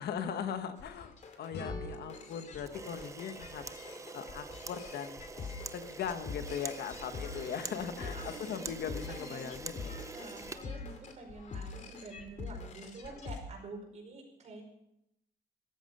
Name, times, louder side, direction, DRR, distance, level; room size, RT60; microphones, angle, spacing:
voice 1, 0.0-3.6 4.1-5.2 5.7-10.0, left 8 dB, 75° left, 9 dB, 1.3 m, -39 dB
sound 1, 0.8-13.4, left 4 dB, 45° left, 2.4 m, -45 dB
sound 2, 1.5-4.4, left 1 dB, 90° left, 6.3 m, -48 dB
Camera, 2.6-11.4, right 4 dB, 20° right, 0.6 m, -45 dB
voice 2, 7.7-9.5 10.1-14.6, right 3 dB, 40° right, 1 dB, 5.1 m, -48 dB
16.5 x 14.5 x 5.5 m, 0.81 s
cardioid pair, 170°, 17 cm